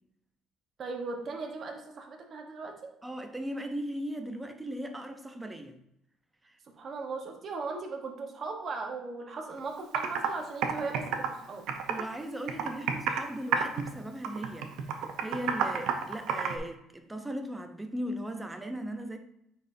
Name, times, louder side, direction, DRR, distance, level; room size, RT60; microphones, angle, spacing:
voice 1, 0.8-2.9 6.7-11.7, right 4 dB, 40° right, 1.1 m, -38 dB
voice 2, 3.0-5.8 6.4-6.6 11.9-14.7 15.2-19.2, equal, 10° right, 0.7 m, -37 dB
Computer keyboard, 9.5-9.6 9.9-10.3 10.6-12.2 12.5-13.3 13.5-13.9 14.2-16.6, right 7 dB, 75° right, 0.8 m, -30 dB
9.1 x 4.3 x 2.7 m
cardioid pair, 130°, 0 cm